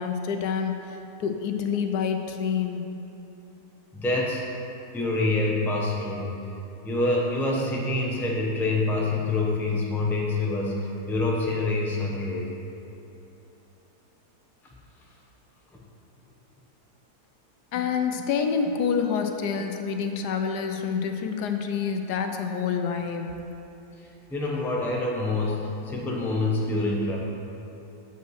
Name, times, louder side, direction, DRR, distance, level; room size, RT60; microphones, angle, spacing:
voice 1, 0.0-2.9 17.7-23.3, left 6 dB, 80° left, 5 dB, 1.2 m, -27 dB
voice 2, 3.9-4.5 4.9-6.4 6.8-12.5 24.0-27.2, left 2 dB, ahead, -3 dB, 0.6 m, -26 dB
7.6 x 5.6 x 6.3 m, 2.9 s
omnidirectional pair, 1.8 m